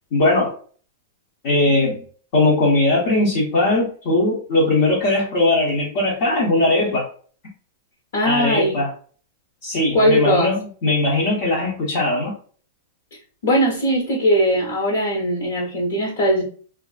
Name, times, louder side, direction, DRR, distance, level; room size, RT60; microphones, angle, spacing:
voice 1, 0.1-0.5 1.4-2.0 2.3-7.0 8.2-8.9 9.6-12.3, left 2 dB, 40° left, -5 dB, 0.7 m, -19 dB
voice 2, 8.1-8.8 9.9-10.5 13.4-16.4, equal, 70° left, -3 dB, 1.1 m, -19 dB
2.6 x 2.4 x 2.4 m, 0.43 s
supercardioid pair, 170°, 0 cm